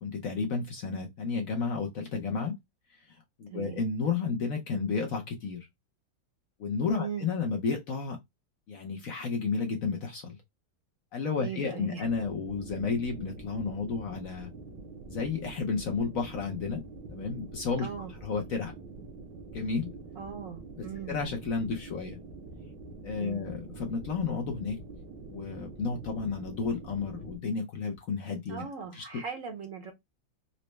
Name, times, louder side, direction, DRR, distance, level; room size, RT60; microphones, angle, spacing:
voice 1, 0.0-2.6 2.9-5.7 6.6-8.2 8.7-10.4 11.1-14.5 15.1-16.8 17.1-17.9 18.2-18.7 19.5-19.9 21.1-22.2 23.0-24.8 25.3-28.6 28.9-29.0, left 5 dB, 60° left, 0.9 m, -32 dB
voice 2, 3.5-3.8 7.0-7.3 11.4-12.0 17.8-18.1 20.1-21.1 23.1-23.4 28.5-29.9, right 7 dB, 60° right, 1.0 m, -39 dB
sound 1, 12.0-27.4, right 3 dB, 80° right, 1.6 m, -45 dB
4.0 x 2.1 x 3.2 m
omnidirectional pair, 1.9 m